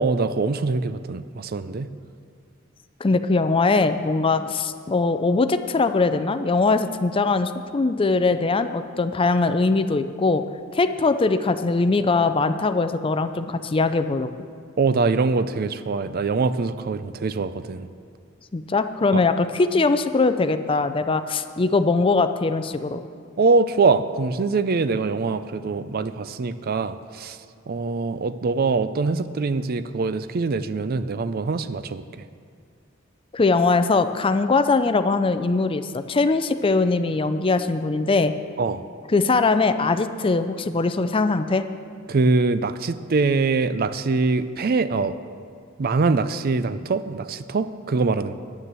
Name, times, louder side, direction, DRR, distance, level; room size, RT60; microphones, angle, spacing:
voice 1, 0.0-1.9 14.8-17.9 19.1-19.2 23.4-27.4 27.7-32.0 38.6-38.8 42.1-45.2 45.8-48.3, right 4 dB, 50° right, 13 dB, 0.4 m, -23 dB
voice 2, 3.0-10.4 10.7-14.3 18.5-23.0 33.3-38.3 39.1-41.7, left 3 dB, 25° left, 10 dB, 0.5 m, -21 dB
9.8 x 9.5 x 7.5 m, 2.2 s
head